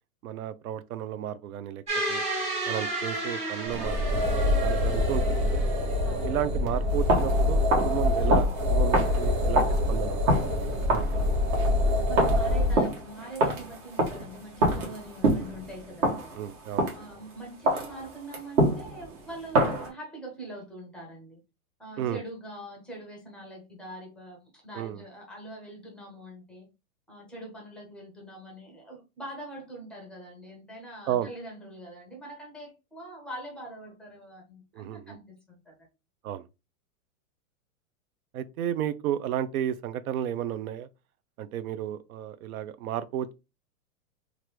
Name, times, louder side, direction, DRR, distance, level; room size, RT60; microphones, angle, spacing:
voice 1, 0.2-2.2 2.7-5.6 6.2-11.2 16.4-16.9 22.0-22.2 24.8-25.0 31.1-31.3 34.7-35.2 36.2-36.4 38.3-40.9 41.4-43.3, right 11 dB, 75° right, 0.6 m, -33 dB
sound 1, 1.9-6.3, right 2 dB, 15° right, 1.2 m, -33 dB
sound 2, 3.7-12.8, left 1 dB, 40° right, 0.9 m, -25 dB
voice 2, 6.0-6.3 11.8-16.3 16.9-21.4 21.8-26.7 27.1-35.8, right 1 dB, ahead, 0.5 m, -43 dB
sound 3, 6.9-17.2 17.7-19.9, right 1 dB, 60° right, 1.4 m, -27 dB
3.0 x 2.5 x 3.1 m
supercardioid pair, 150°, 43 cm